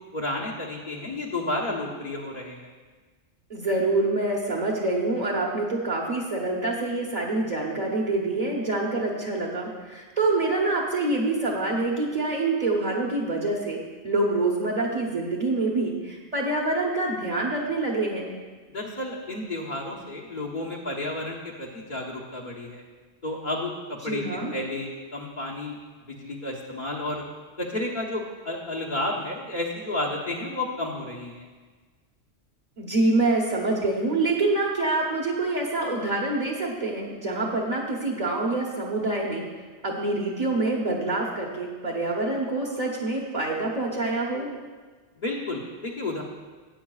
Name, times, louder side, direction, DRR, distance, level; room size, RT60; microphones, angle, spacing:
voice 1, 0.1-2.7 18.7-22.8 23.2-24.2 24.5-25.8 26.1-27.2 27.6-31.4 45.2-46.2, left 2 dB, 45° left, -2 dB, 1.2 m, -31 dB
voice 2, 3.5-18.3 24.0-24.5 32.8-39.5 39.8-44.5, right 2 dB, 35° right, -4 dB, 1.2 m, -26 dB
16.5 x 8.6 x 2.4 m, 1.4 s
omnidirectional pair, 1.2 m